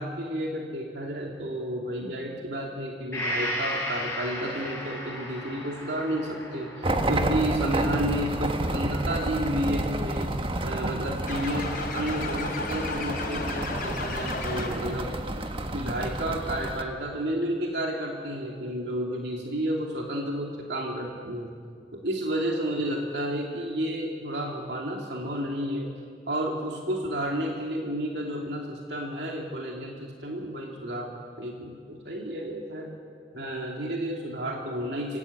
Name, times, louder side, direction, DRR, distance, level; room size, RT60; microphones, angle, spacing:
voice 1, 0.0-10.3 10.6-15.1 15.7-21.5 21.9-25.9 26.3-31.1 31.4-32.9 33.3-35.2, right 1 dB, 75° right, -1 dB, 2.7 m, -31 dB
Gong, 3.1-10.8 11.1-11.2, left 1 dB, 15° left, 7.4 m, -36 dB
sound 1, 6.8-16.8, right 1 dB, 30° right, 1.4 m, -30 dB
sound 2, 11.3-15.1, left 3 dB, 55° left, 3.9 m, -34 dB
25.5 x 16.5 x 8.6 m, 2.2 s
head